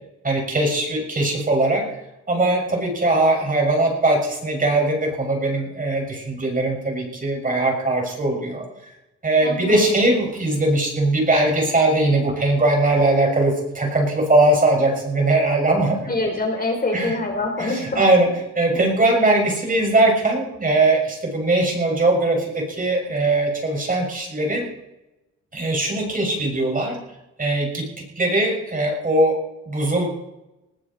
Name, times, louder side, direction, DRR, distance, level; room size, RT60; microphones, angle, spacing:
voice 1, 0.2-1.9 2.3-8.6 9.2-16.1 16.9-17.2 17.6-18.3 18.6-24.6 25.5-27.0 27.4-27.9 28.2-29.4 29.7-30.1, right 2 dB, 25° right, 1 dB, 7.1 m, -20 dB
voice 2, 9.4-9.9 16.0-18.0, left 2 dB, 30° left, 2 dB, 5.2 m, -25 dB
20.5 x 15.0 x 4.7 m, 0.93 s
cardioid pair, 90°, 30 cm